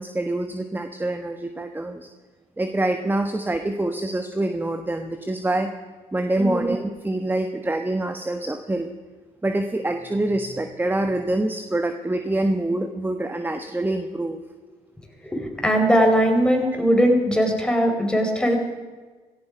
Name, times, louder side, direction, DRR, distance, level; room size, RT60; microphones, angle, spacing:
voice 1, 0.0-2.1 2.6-5.7 6.1-8.9 9.4-14.4, right 1 dB, 15° right, 7 dB, 1.4 m, -25 dB
voice 2, 15.2-18.6, equal, 5° left, 2 dB, 4.7 m, -20 dB
16.5 x 15.0 x 5.2 m, 1.4 s
hypercardioid pair, 50°, 15 cm